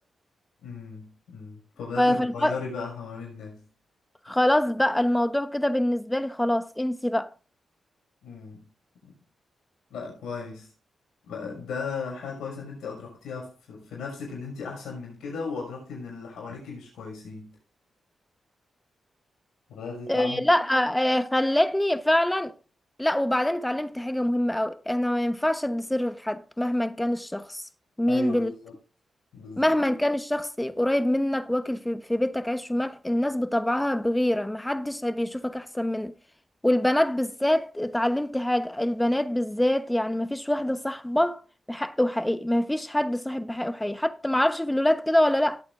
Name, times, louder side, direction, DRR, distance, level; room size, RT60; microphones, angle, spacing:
voice 1, 0.6-3.7 8.2-8.7 9.0-9.1 9.9-10.7 11.2-17.6 19.7-20.5 28.1-28.8 29.3-29.7, left 4 dB, 90° left, 6.1 m, -36 dB
voice 2, 2.0-2.5 4.3-7.3 20.1-22.5 23.0-27.6 28.0-28.5 29.6-36.1 36.6-41.4 41.7-45.6, left 1 dB, 10° left, 1.1 m, -25 dB
18.5 x 8.5 x 2.6 m
supercardioid pair, 50°, 0 cm